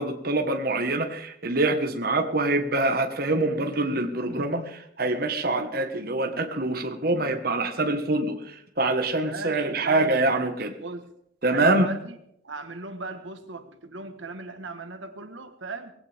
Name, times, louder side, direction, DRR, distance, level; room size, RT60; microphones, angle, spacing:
voice 1, 0.0-10.7 11.4-11.9, right 2 dB, 50° right, 5 dB, 1.6 m, -25 dB
voice 2, 9.2-11.1 11.5-12.2 12.4-15.9, right 3 dB, 70° right, 7 dB, 1.5 m, -38 dB
19.5 x 16.5 x 3.6 m, 0.74 s
head